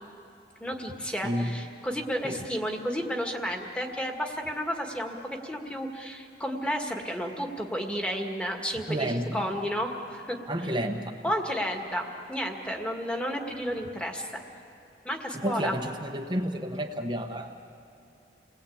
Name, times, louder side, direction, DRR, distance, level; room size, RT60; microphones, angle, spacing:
voice 1, 0.6-10.4 11.2-14.4 15.0-15.8, equal, 5° left, 2 dB, 1.9 m, -32 dB
voice 2, 1.2-1.6 2.2-2.4 8.9-9.5 10.5-11.1 15.3-17.5, equal, 25° right, 3 dB, 1.1 m, -30 dB
29.5 x 20.5 x 8.7 m, 2.7 s
head